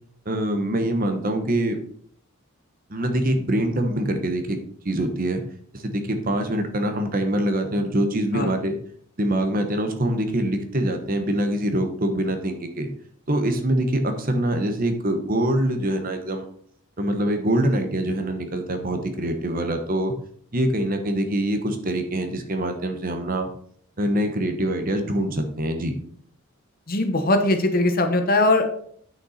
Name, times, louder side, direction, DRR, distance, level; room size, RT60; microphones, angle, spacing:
voice 1, 0.2-1.8 2.9-4.6 4.8-5.4 5.7-8.8 9.2-12.9 13.3-16.5 17.0-20.1 20.5-23.5 24.0-25.9, right 1 dB, 40° right, 6 dB, 1.1 m, -24 dB
voice 2, 26.9-28.7, left 2 dB, 40° left, 6 dB, 1.0 m, -20 dB
8.7 x 6.5 x 4.2 m, 0.63 s
head